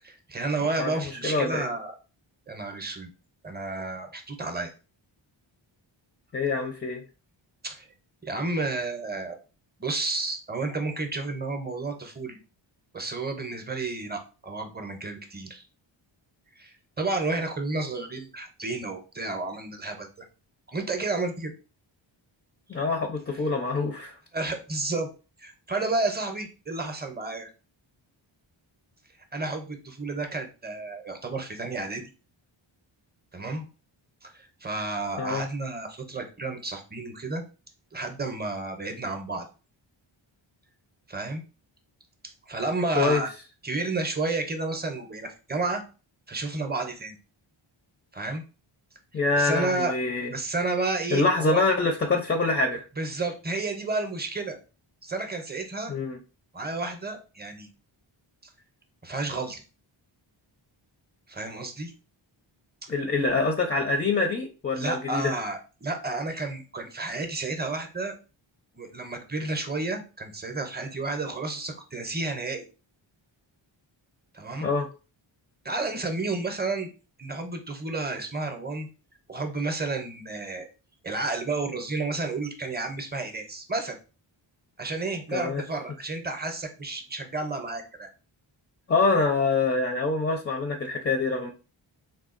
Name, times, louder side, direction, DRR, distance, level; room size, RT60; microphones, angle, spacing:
voice 1, 0.0-1.9 2.5-3.1 3.4-4.7 7.6-7.8 8.2-9.4 9.8-12.4 12.9-15.6 16.6-20.1 20.7-21.5 24.3-25.1 25.4-27.5 29.3-32.0 33.3-33.7 34.2-37.4 37.9-39.5 41.1-41.4 42.5-43.3 43.6-45.8 46.3-47.2 48.1-48.4 49.3-49.9 50.3-51.6 53.0-54.6 55.0-55.9 56.5-57.7 59.0-59.6 61.3-61.9 64.8-68.1 68.7-72.6 74.3-74.7 75.6-76.9 77.2-78.9 79.3-80.7 81.0-84.0 84.8-88.1, right 3 dB, 20° right, 5 dB, 0.6 m, -31 dB
voice 2, 0.8-1.6 6.3-7.0 22.7-24.2 35.2-35.4 43.0-43.2 49.1-50.3 51.1-52.8 55.9-56.2 62.9-65.3 74.6-74.9 85.3-85.6 88.9-91.5, left 3 dB, 25° left, 4 dB, 0.4 m, -25 dB
3.6 x 2.2 x 2.5 m, 0.34 s
wide cardioid pair, 80°, 49 cm